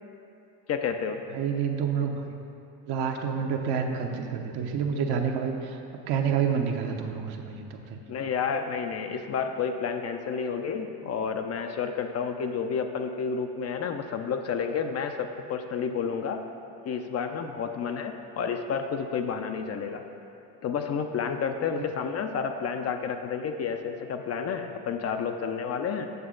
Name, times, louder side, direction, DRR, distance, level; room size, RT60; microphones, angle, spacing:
voice 1, 0.7-1.2 8.1-16.4 16.8-20.0 20.6-26.1, left 6 dB, 35° left, 6 dB, 0.5 m, -30 dB
voice 2, 1.3-2.4 2.9-8.0, right 6 dB, 60° right, 3 dB, 0.9 m, -29 dB
8.0 x 7.0 x 3.8 m, 2.8 s
supercardioid pair, 90°, 42 cm